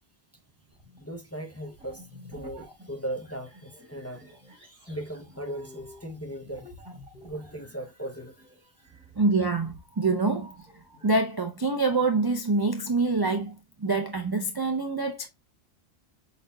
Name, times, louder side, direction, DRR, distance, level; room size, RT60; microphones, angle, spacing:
sound 1, 0.7-1.2 1.5-11.2, left 1 dB, 5° right, 2.1 m, -51 dB
voice 1, 1.0-6.9 7.2-8.9, right 1 dB, 15° left, 0.6 m, -38 dB
voice 2, 9.2-10.5 11.0-15.3, right 3 dB, 35° right, 0.4 m, -26 dB
5.4 x 4.0 x 2.2 m
omnidirectional pair, 1.2 m